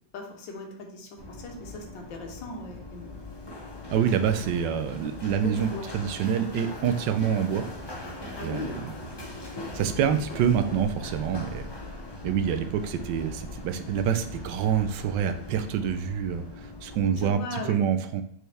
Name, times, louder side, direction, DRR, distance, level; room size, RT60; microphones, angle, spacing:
voice 1, 0.1-3.2 5.4-5.9 8.4-8.8 17.2-17.8, left 2 dB, 85° left, 3 dB, 1.7 m, -38 dB
Run, 1.2-17.3, left 2 dB, 20° left, 0.6 m, -40 dB
voice 2, 3.9-7.6 8.4-8.9 9.7-11.7 12.2-18.2, right 8 dB, 80° right, 9 dB, 1.2 m, -26 dB
6.4 x 4.6 x 3.3 m, 0.64 s
omnidirectional pair, 2.0 m